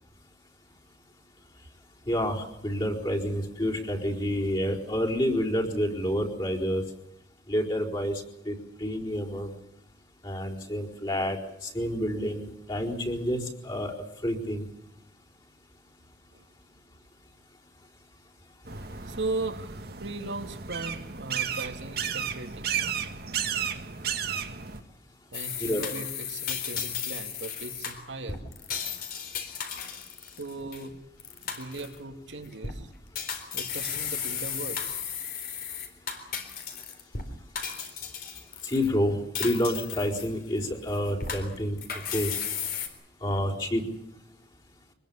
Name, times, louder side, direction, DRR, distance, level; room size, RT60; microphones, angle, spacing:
voice 1, 2.1-6.8 7.5-8.5 8.8-9.5 10.2-11.4 11.6-13.9 14.2-14.6 25.6-25.8 38.6-41.8 42.1-42.3 43.2-43.8, equal, 25° left, -3 dB, 4.4 m, -28 dB
sound 1, 18.6-24.8, right 8 dB, 55° right, 1.8 m, -33 dB
voice 2, 19.0-23.0 25.3-28.4 30.4-31.0 31.4-32.9 33.5-35.0 37.8-37.9, right 2 dB, 85° right, 6 dB, 2.4 m, -38 dB
sound 2, 25.3-30.9 31.2-32.0 32.5-32.8 33.2-37.3 37.6-38.9 39.4-40.6 40.9-42.9, left 7 dB, 55° left, 4.0 m, -35 dB
25.0 x 20.5 x 7.2 m, 0.84 s
head